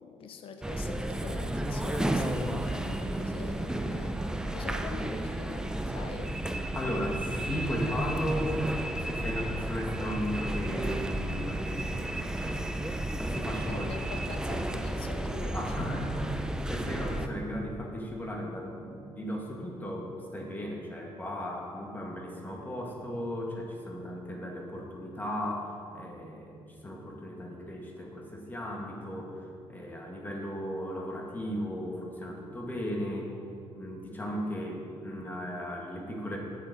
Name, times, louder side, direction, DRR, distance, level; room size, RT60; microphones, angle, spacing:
voice 1, 0.0-4.2 4.5-6.3 13.7-15.9, left 5 dB, 65° left, 7 dB, 0.7 m, -44 dB
sound 1, 0.6-17.3, right 1 dB, 5° right, 0.4 m, -33 dB
voice 2, 6.7-8.6 9.1-12.6 13.2-13.8 14.7-14.8 15.4-16.1 16.7-29.4 29.7-33.3 33.7-36.4, equal, 20° left, -1 dB, 1.5 m, -36 dB
8.7 x 7.0 x 4.0 m, 2.4 s
cardioid pair, 100°, 10 cm